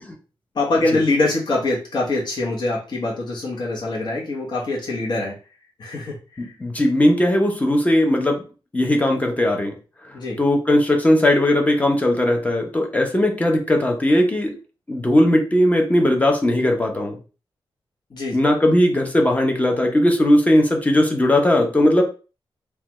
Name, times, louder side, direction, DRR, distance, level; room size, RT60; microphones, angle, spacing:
voice 1, 0.5-5.4 5.8-6.5 10.1-10.4 18.1-18.4, left 2 dB, 50° left, -3 dB, 1.0 m, -24 dB
voice 2, 6.4-8.4 8.7-9.7 10.4-14.6 14.9-17.2 18.3-22.0, left 1 dB, 15° left, 3 dB, 0.7 m, -18 dB
3.1 x 2.3 x 3.0 m, 0.34 s
wide cardioid pair, 125°, 9 cm